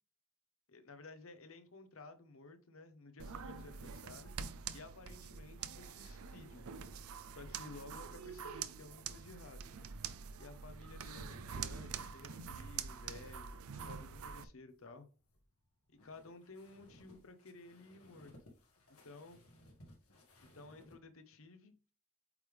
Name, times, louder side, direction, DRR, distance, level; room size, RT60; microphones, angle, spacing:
voice 1, 0.7-4.3 4.7-6.7 7.3-9.7 10.4-15.1 15.9-18.3 19.0-19.4 20.4-21.7, left 3 dB, 65° left, 0.9 m, -54 dB
sound 1, 3.2-14.4, right 6 dB, 80° right, 0.5 m, -46 dB
sound 2, 14.7-21.0, left 1 dB, 85° left, 1.8 m, -62 dB
8.3 x 3.4 x 3.5 m
head